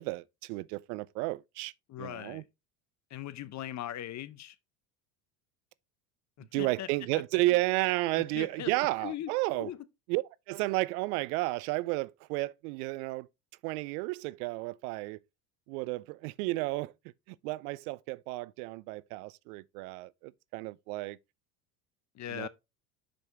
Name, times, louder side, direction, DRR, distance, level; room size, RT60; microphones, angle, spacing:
voice 1, 0.0-1.7 2.0-2.4 6.5-9.7 10.1-13.3 13.6-15.2 15.7-16.9 17.3-21.2 22.3-22.5, right 20 dB, 70° right, 0.5 m, -32 dB
voice 2, 1.9-2.4 3.1-4.6 6.4-6.9 8.3-8.7 9.0-9.3 9.6-9.8 22.1-22.5, left 12 dB, 35° left, 0.7 m, -39 dB
6.1 x 5.1 x 3.5 m
hypercardioid pair, 80°, 48 cm